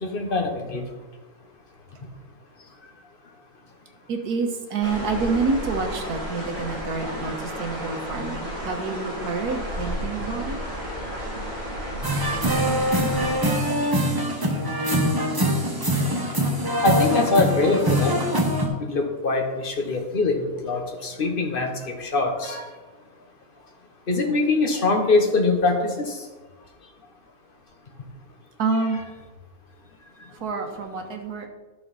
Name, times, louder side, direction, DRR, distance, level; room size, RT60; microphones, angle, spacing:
voice 1, 0.0-0.8 13.8-13.9 16.8-18.1 18.8-22.7 24.1-26.2, left 3 dB, 40° left, 4 dB, 1.2 m, -23 dB
voice 2, 4.1-10.6 28.6-29.0 30.4-31.5, right 4 dB, 90° right, 4 dB, 1.7 m, -27 dB
sound 1, 4.8-13.3, equal, 40° right, 3.2 m, -32 dB
sound 2, 12.0-18.7, equal, 15° right, 1.0 m, -23 dB
11.5 x 6.3 x 4.1 m, 1.3 s
omnidirectional pair, 1.6 m